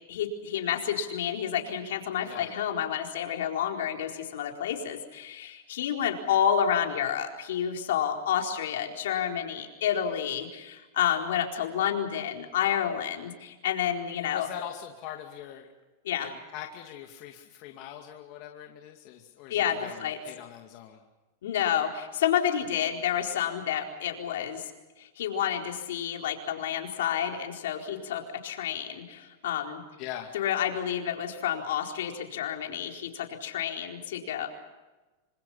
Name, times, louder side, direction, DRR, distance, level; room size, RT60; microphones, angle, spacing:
voice 1, 0.1-14.5 16.0-16.4 19.5-20.2 21.4-24.6 25.0-29.8 30.3-34.5, left 9 dB, 80° left, 2 dB, 4.3 m, -29 dB
voice 2, 14.1-15.7 16.2-21.0 30.0-30.3, left 11 dB, 45° left, 2 dB, 2.4 m, -42 dB
26.5 x 26.0 x 5.8 m, 1.2 s
supercardioid pair, 140°, 0 cm